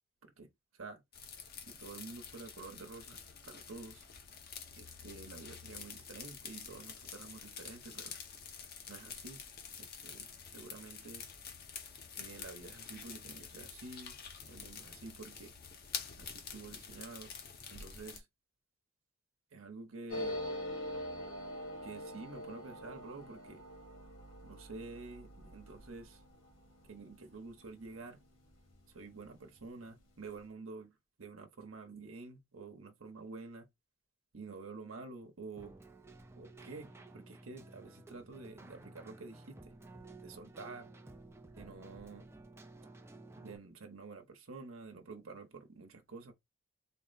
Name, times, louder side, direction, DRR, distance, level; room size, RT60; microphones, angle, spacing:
sound 1, 1.1-18.2, left 6 dB, 45° left, 0.8 m, -48 dB
voice 1, 1.7-3.2 3.5-4.0 4.8-8.2 8.9-9.4 9.8-11.2 12.2-14.1 14.5-15.5 16.2-17.3 17.7-18.3 19.5-20.4 21.8-23.6 24.4-26.2 26.9-28.2 28.9-33.7 34.3-35.8 36.4-39.7 40.2-40.9 41.6-42.3 43.4-46.3, right 3 dB, 70° right, 1.0 m, -49 dB
sound 2, 20.1-29.2 29.5-29.6 29.8-30.4, left 1 dB, 65° left, 1.8 m, -45 dB
Keyboard (musical), 35.6-43.6, right 2 dB, 10° right, 0.5 m, -54 dB
4.0 x 2.2 x 4.0 m
head